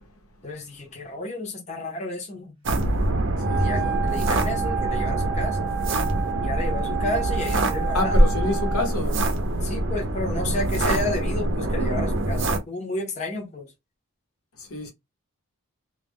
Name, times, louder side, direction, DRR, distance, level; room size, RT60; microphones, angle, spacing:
voice 1, 0.4-2.5 3.6-5.7 6.4-8.4 9.6-13.7, left 1 dB, 30° left, 0.7 m, -31 dB
sound 1, 2.7-12.6, right 1 dB, 55° right, 0.6 m, -25 dB
Wind instrument woodwind instrument, 3.3-9.0, right 10 dB, 20° right, 0.7 m, -31 dB
voice 2, 3.5-3.9 7.9-9.2 14.6-14.9, equal, 90° left, 1.0 m, -23 dB
2.3 x 2.2 x 3.4 m
head